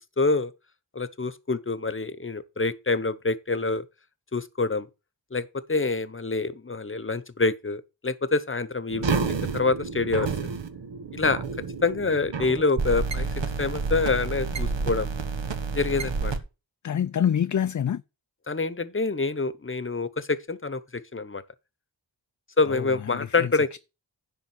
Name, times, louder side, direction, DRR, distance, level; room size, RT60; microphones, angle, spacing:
voice 1, 0.2-0.5 0.9-3.8 4.3-4.9 5.3-9.2 9.5-10.5 11.1-11.4 11.8-13.3 13.6-15.1 15.7-16.3 18.5-20.8 21.1-21.4 22.6-23.7, left 3 dB, 30° left, 0.9 m, -26 dB
sound 1, 8.9-16.4, right 4 dB, 80° right, 1.3 m, -29 dB
voice 2, 16.8-18.0 22.6-23.8, left 9 dB, 45° left, 0.4 m, -27 dB
10.5 x 3.6 x 7.2 m
wide cardioid pair, 55°, 43 cm